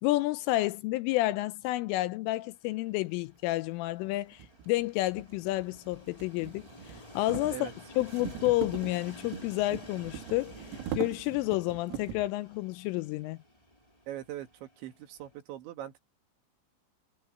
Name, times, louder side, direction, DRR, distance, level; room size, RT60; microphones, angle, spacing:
voice 1, 0.0-7.7 8.0-10.5 11.0-13.4, left 18 dB, 80° left, 3.1 m, -30 dB
Train, 2.4-15.4, left 2 dB, 30° left, 0.6 m, -53 dB
sound 1, 3.5-3.6 4.3-12.4, right 11 dB, 85° right, 4.6 m, -42 dB
voice 2, 14.1-16.0, right 12 dB, 65° right, 3.8 m, -41 dB
omnidirectional pair, 6.0 m